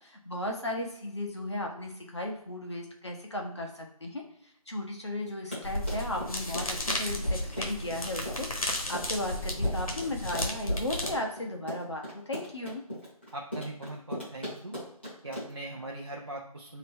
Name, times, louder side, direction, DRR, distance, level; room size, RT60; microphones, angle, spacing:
voice 1, 0.0-4.2 4.7-12.8, left 1 dB, 45° left, 1 dB, 0.9 m, -35 dB
Run, 5.3-15.7, equal, 15° left, 1.0 m, -39 dB
sound 1, 5.6-11.2, left 1 dB, 65° left, 1.2 m, -33 dB
voice 2, 13.3-14.8 15.2-16.8, right 1 dB, 45° right, -2 dB, 0.6 m, -40 dB
3.2 x 2.8 x 3.4 m, 0.71 s
figure-of-eight pair, 180°, 19 cm